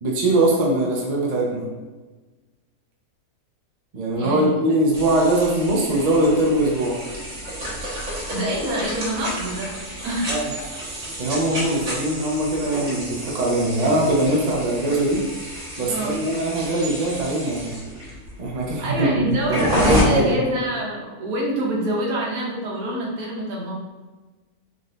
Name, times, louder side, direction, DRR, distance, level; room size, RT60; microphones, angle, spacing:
voice 1, 0.0-1.7 3.9-7.0 10.3-10.5 11.2-15.2 15.8-17.8 18.4-20.4, right 1 dB, 40° right, -3 dB, 0.6 m, -21 dB
voice 2, 4.2-4.5 8.3-9.7 10.0-10.5 11.7-11.8 15.9-16.2 18.8-23.7, right 1 dB, 75° right, -3 dB, 1.3 m, -26 dB
sound 1, 4.9-20.0, right 1 dB, 60° right, 1.6 m, -30 dB
3.8 x 2.6 x 3.2 m, 1.2 s
omnidirectional pair, 1.5 m